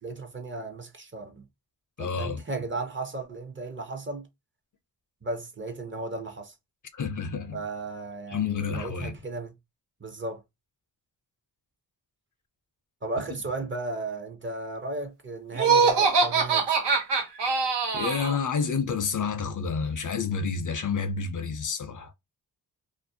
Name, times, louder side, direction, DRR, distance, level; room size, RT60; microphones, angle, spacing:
voice 1, 0.0-1.4 2.0-4.3 5.2-6.5 7.5-9.5 10.0-10.4 13.0-16.8, right 2 dB, 30° right, 0.6 m, -35 dB
voice 2, 2.0-2.4 6.9-7.6 8.3-9.1 17.9-22.1, left 5 dB, 50° left, 0.5 m, -29 dB
Laughter, 15.5-18.4, right 5 dB, 85° right, 0.8 m, -23 dB
2.5 x 2.0 x 2.6 m
cardioid pair, 65°, 41 cm